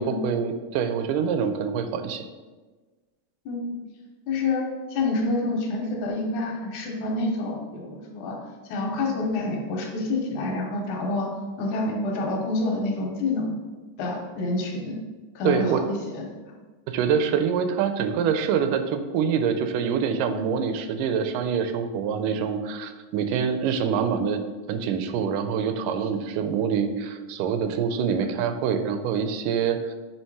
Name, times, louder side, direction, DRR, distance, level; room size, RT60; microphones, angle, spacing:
voice 1, 0.0-2.3 15.4-15.8 16.9-24.4 24.7-29.9, right 7 dB, 90° right, 8 dB, 2.1 m, -25 dB
voice 2, 3.5-3.8 4.3-8.4 8.7-13.6 14.0-15.0 15.4-16.2 28.1-28.2, left 2 dB, 75° left, 0 dB, 2.2 m, -28 dB
7.2 x 3.2 x 4.6 m, 1.3 s
omnidirectional pair, 3.6 m